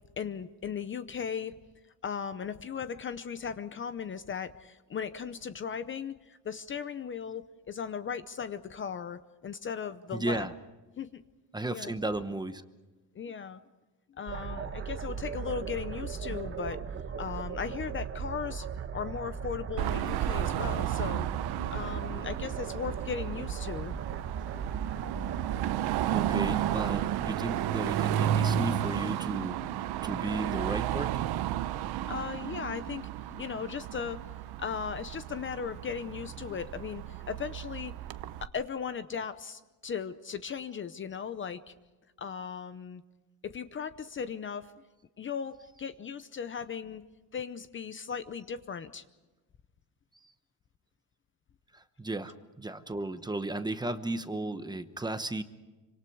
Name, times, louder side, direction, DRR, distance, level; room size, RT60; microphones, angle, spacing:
voice 1, 0.2-1.6 2.0-10.5 11.0-11.2 11.7-12.0 13.1-13.6 14.2-16.8 17.2-21.3 21.7-24.0 32.1-34.2 34.6-38.0 38.4-41.7 42.2-43.0 43.4-44.7 45.2-47.0 47.3-49.0, left 6 dB, 30° left, 12 dB, 0.7 m, -37 dB
voice 2, 10.1-10.5 11.5-12.6 26.1-29.7 30.0-31.2 51.7-55.4, right 2 dB, 10° right, 10 dB, 0.9 m, -34 dB
sound 1, 14.3-28.5, right 6 dB, 35° right, 1.1 m, -38 dB
Car passing by / Traffic noise roadway noise / Engine, 19.8-38.5, right 11 dB, 75° right, 0.9 m, -33 dB
27.0 x 25.5 x 4.7 m, 1.2 s
cardioid pair, 150°, 39 cm